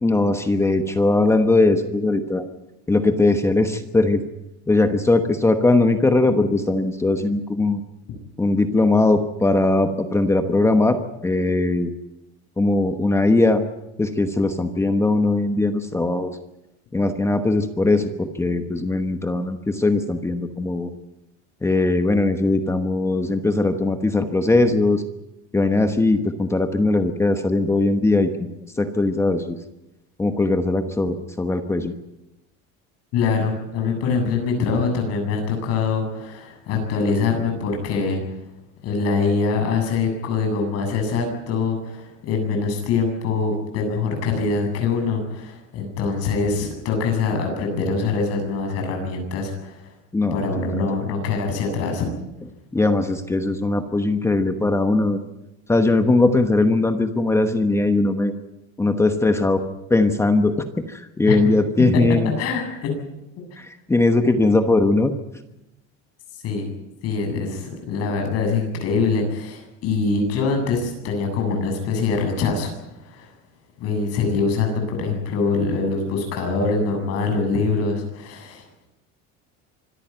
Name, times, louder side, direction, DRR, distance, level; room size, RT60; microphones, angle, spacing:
voice 1, 0.0-2.4 2.9-4.2 4.7-7.8 8.4-11.9 12.6-13.6 14.0-16.3 16.9-20.9 21.6-25.0 25.5-29.6 30.2-31.9 50.1-50.7 52.7-55.2 55.7-58.3 58.8-59.6 59.9-60.5 60.9-62.3 63.6-65.1, left 2 dB, 10° left, 7 dB, 1.1 m, -20 dB
voice 2, 33.1-38.2 38.8-49.8 50.3-52.1 61.3-61.4 61.9-63.0 66.4-66.7 67.0-72.7 73.0-73.3 73.8-78.7, left 4 dB, 50° left, 4 dB, 7.7 m, -24 dB
25.5 x 13.5 x 9.3 m, 0.92 s
cardioid pair, 165°, 32 cm